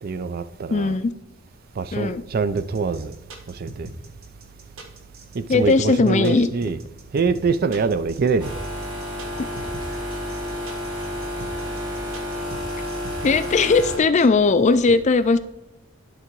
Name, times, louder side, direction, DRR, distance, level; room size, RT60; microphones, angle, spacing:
voice 1, 0.0-0.9 1.8-3.1 3.5-3.9 5.3-6.8 7.1-8.5 14.9-15.0, right 4 dB, 50° right, 0.4 m, -24 dB
voice 2, 0.7-1.1 1.9-2.2 5.5-6.5 13.2-15.4, left 4 dB, 35° left, 0.4 m, -18 dB
sound 1, 2.6-14.3, right 2 dB, 85° right, 1.2 m, -40 dB
sound 2, 8.4-14.0, left 1 dB, 25° right, 2.0 m, -30 dB
11.0 x 3.8 x 4.5 m
head